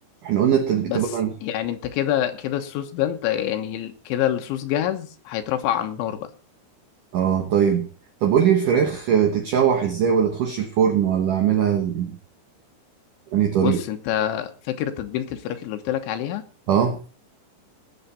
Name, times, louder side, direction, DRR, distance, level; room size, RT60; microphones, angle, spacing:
voice 1, 0.2-1.3 7.1-7.9 8.2-12.2 13.3-13.8 16.7-17.0, right 8 dB, 70° right, 5 dB, 2.1 m, -20 dB
voice 2, 0.9-6.3 13.6-16.4, left 11 dB, 85° left, 7 dB, 3.7 m, -26 dB
20.0 x 8.1 x 4.1 m, 0.34 s
omnidirectional pair, 5.3 m